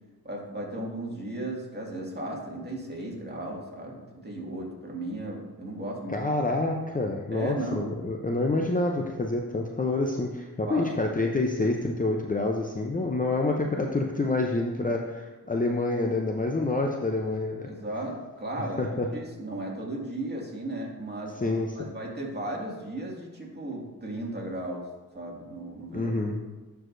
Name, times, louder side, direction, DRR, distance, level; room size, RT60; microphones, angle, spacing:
voice 1, 0.2-6.2 7.3-7.9 10.7-11.2 17.6-21.4 21.8-24.9 25.1-26.1, right 1 dB, 25° right, -3 dB, 2.1 m, -35 dB
voice 2, 6.1-17.7 18.8-19.1 21.4-21.7 25.9-26.4, left 2 dB, 20° left, 1 dB, 0.6 m, -27 dB
10.5 x 4.7 x 2.6 m, 1.3 s
cardioid pair, 70°, 38 cm